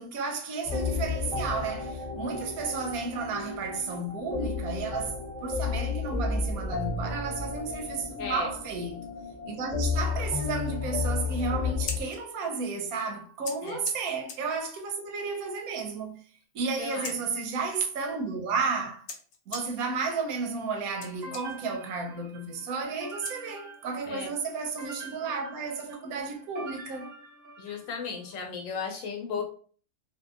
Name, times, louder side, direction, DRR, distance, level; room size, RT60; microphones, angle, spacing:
voice 1, 0.0-5.2 5.4-9.1 9.5-16.2 16.5-19.1 19.5-27.1, right 4 dB, 90° right, 1.1 m, -32 dB
sound 1, 0.6-12.0, left 4 dB, ahead, 0.9 m, -32 dB
voice 2, 8.2-8.5 13.6-13.8 16.8-17.1 24.1-24.3 27.6-29.4, left 5 dB, 70° left, 0.9 m, -35 dB
Scissors, 11.6-24.0, left 5 dB, 90° left, 1.1 m, -47 dB
sound 2, 21.2-28.1, right 2 dB, 50° right, 1.0 m, -46 dB
2.7 x 2.4 x 2.3 m
omnidirectional pair, 1.5 m